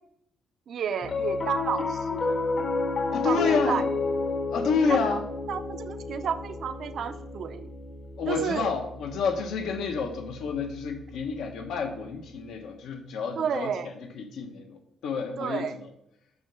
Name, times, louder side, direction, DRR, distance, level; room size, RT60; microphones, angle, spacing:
voice 1, 0.7-2.4 3.2-3.8 4.9-5.2 5.5-7.7 8.3-8.7 13.4-13.9 15.4-15.8, right 7 dB, 55° right, 10 dB, 0.5 m, -31 dB
Piano, 1.0-11.5, left 3 dB, 40° left, 0.9 m, -32 dB
voice 2, 3.1-3.8 4.5-5.2 8.2-13.7 14.1-14.8 15.0-15.7, left 5 dB, 80° left, 4 dB, 1.3 m, -29 dB
6.2 x 5.9 x 5.4 m, 0.77 s
cardioid pair, 145°, 0 cm